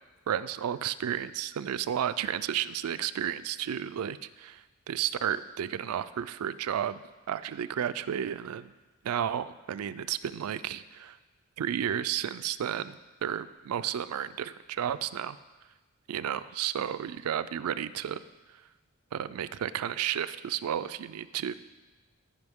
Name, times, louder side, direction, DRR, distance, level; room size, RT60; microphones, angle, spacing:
voice 1, 0.3-7.0 7.3-8.7 9.0-11.2 11.6-15.4 16.1-18.2 19.1-21.5, right 9 dB, 85° right, 14 dB, 0.4 m, -32 dB
15.5 x 5.3 x 3.6 m, 1.2 s
head